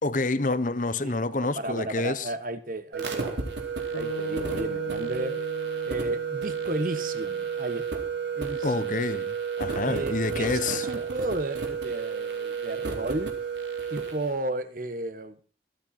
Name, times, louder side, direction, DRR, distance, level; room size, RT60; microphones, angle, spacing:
voice 1, 0.0-2.3 8.6-10.9, left 3 dB, 45° left, 1.0 m, -28 dB
voice 2, 1.0-3.5 3.9-5.4 5.9-8.0 8.4-8.9 9.8-13.3 13.9-15.4, right 1 dB, 50° right, 1.5 m, -34 dB
sound 1, 2.9-14.3, right 6 dB, 85° right, 4.1 m, -31 dB
sound 2, 3.9-8.2, left 2 dB, 65° left, 1.7 m, -41 dB
24.5 x 8.9 x 4.3 m
head